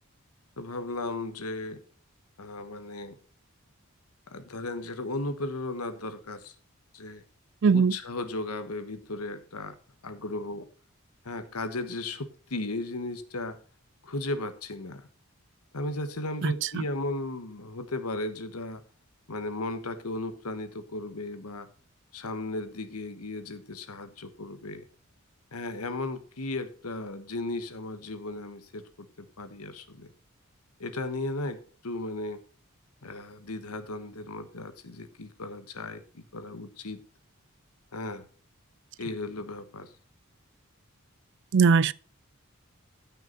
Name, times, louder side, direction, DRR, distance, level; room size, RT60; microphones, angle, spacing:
voice 1, 0.6-1.8 2.4-3.2 4.3-6.5 6.9-7.2 7.7-9.8 10.0-10.7 11.2-13.6 14.0-15.1 15.7-18.8 19.3-21.7 22.1-24.8 25.5-30.1 30.8-32.4 33.0-37.0 37.9-38.2 39.0-39.9, left 2 dB, 85° left, 1.4 m, -35 dB
voice 2, 7.6-8.0 16.4-16.8 41.5-41.9, right 5 dB, 55° right, 0.4 m, -21 dB
14.0 x 5.9 x 4.0 m
head